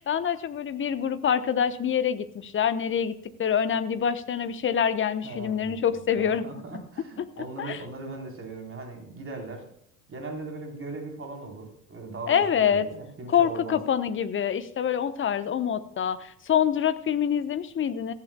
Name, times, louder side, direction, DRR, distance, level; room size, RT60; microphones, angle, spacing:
voice 1, 0.0-6.4 6.7-6.8 7.6-7.8 12.3-12.9 13.3-18.1, left 8 dB, 25° left, 12 dB, 1.1 m, -26 dB
voice 2, 5.2-9.6 10.1-13.8, right 3 dB, 25° right, 1 dB, 4.2 m, -39 dB
17.5 x 15.0 x 2.3 m, 0.70 s
figure-of-eight pair, 65°, 46 cm